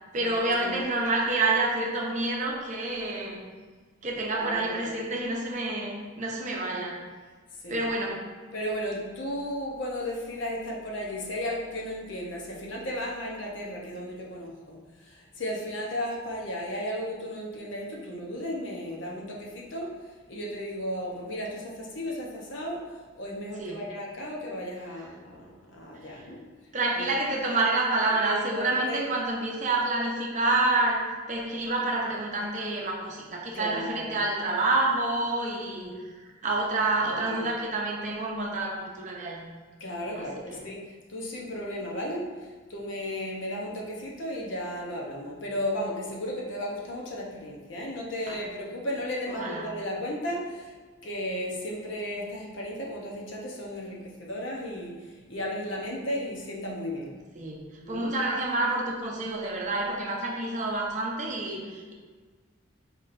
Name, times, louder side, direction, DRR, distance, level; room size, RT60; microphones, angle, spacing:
voice 1, 0.1-3.4 4.0-7.0 7.7-8.2 23.6-23.8 26.7-31.0 31.3-35.9 36.2-39.4 40.2-40.6 48.3-48.4 49.3-49.7 57.3-61.9, right 2 dB, 40° right, -1 dB, 0.7 m, -28 dB
voice 2, 4.3-4.9 7.6-7.8 8.5-26.4 27.0-27.1 28.2-29.1 33.5-34.2 37.1-37.6 39.8-50.7 51.0-57.1 57.8-58.2, equal, 70° left, -2 dB, 0.9 m, -35 dB
4.6 x 4.2 x 2.6 m, 1.4 s
head